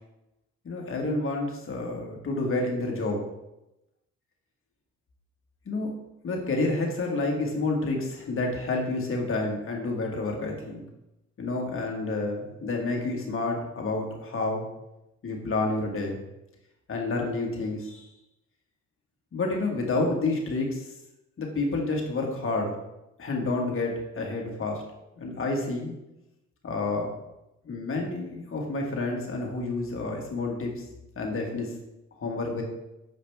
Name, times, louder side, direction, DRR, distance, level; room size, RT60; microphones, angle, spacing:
voice 1, 0.6-3.2 5.7-5.9 6.2-10.8 11.4-14.7 15.2-16.2 16.9-18.1 19.3-20.8 21.4-22.8 23.2-24.8 25.2-25.9 26.6-27.1 27.6-30.7 31.2-31.7 32.2-32.6, left 2 dB, 45° left, 0 dB, 1.7 m, -29 dB
6.7 x 4.9 x 3.5 m, 0.92 s
cardioid pair, 90°, 30 cm